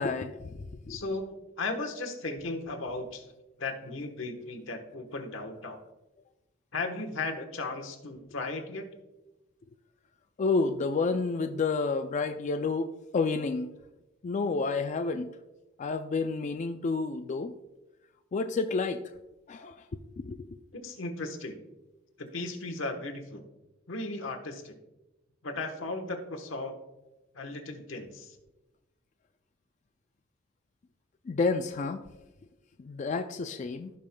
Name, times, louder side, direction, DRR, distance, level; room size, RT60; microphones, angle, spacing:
voice 1, 0.0-1.0 10.4-13.7 14.2-15.3 15.8-17.5 18.3-19.0 19.5-20.5 31.3-32.0 32.8-33.9, left 4 dB, 40° left, 7 dB, 0.3 m, -30 dB
voice 2, 0.9-3.2 3.6-5.8 6.7-8.9 20.7-21.6 22.2-23.4 23.9-24.7 25.4-26.7 27.3-28.4, left 3 dB, 85° left, 4 dB, 1.1 m, -36 dB
16.0 x 5.5 x 2.2 m, 1.0 s
head